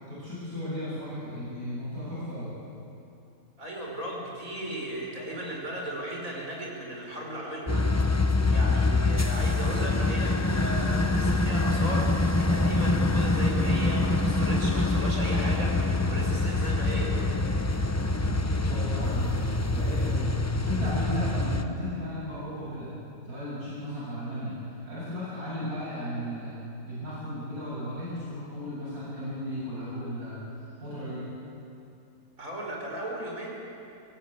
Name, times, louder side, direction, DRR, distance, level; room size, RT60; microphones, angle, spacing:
voice 1, 0.1-2.5 16.0-16.2 18.2-22.9 23.2-26.5 26.8-30.4 30.8-31.3, equal, 80° right, -9 dB, 8.2 m, -35 dB
voice 2, 3.6-7.9 8.2-17.4 32.4-33.5, right 1 dB, 65° right, -2 dB, 5.5 m, -36 dB
sound 1, 7.7-21.6, left 2 dB, 15° left, 0.6 m, -25 dB
23.5 x 18.5 x 8.9 m, 2.7 s
omnidirectional pair, 1.6 m